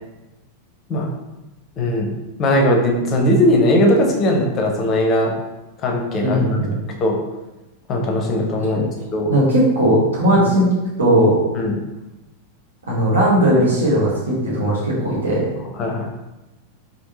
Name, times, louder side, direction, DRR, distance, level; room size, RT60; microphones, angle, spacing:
voice 1, 1.8-2.1 2.4-5.3 5.8-6.4 7.0-7.2 7.9-9.3 10.4-10.5 11.5-11.8 15.8-16.1, left 1 dB, 30° left, 1 dB, 0.6 m, -18 dB
voice 2, 6.2-6.7 9.3-10.6 11.0-11.4 12.9-15.5, right 1 dB, 70° right, -7 dB, 1.2 m, -17 dB
3.5 x 2.5 x 2.7 m, 1.0 s
figure-of-eight pair, 90°, 0 cm